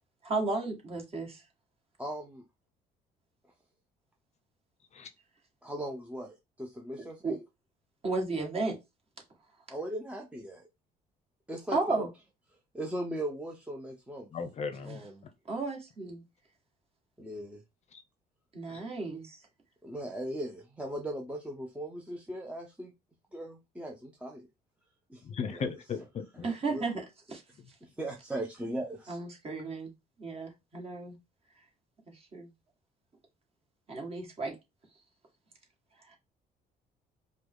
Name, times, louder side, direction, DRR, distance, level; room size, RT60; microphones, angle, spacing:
voice 1, 0.2-1.4 7.2-7.3 8.0-8.8 11.7-12.1 15.5-16.2 18.5-19.4 26.4-27.0 27.3-27.4 29.1-29.9 30.2-31.1 32.3-32.5 33.9-34.6 36.1-36.2, right 3 dB, 35° right, 1.9 m, -33 dB
voice 2, 2.0-2.4 5.6-7.4 9.7-10.6 11.5-12.1 12.7-14.3 14.8-15.2 17.2-17.6 19.8-22.9 23.3-24.5 25.1-25.7 26.4-26.8 27.8-29.2, right 1 dB, 5° right, 0.7 m, -38 dB
voice 3, 14.3-15.3 17.9-18.0 18.7-18.8 25.2-26.5, left 5 dB, 40° left, 0.7 m, -37 dB
4.9 x 2.3 x 3.7 m
cardioid pair, 110°, 17 cm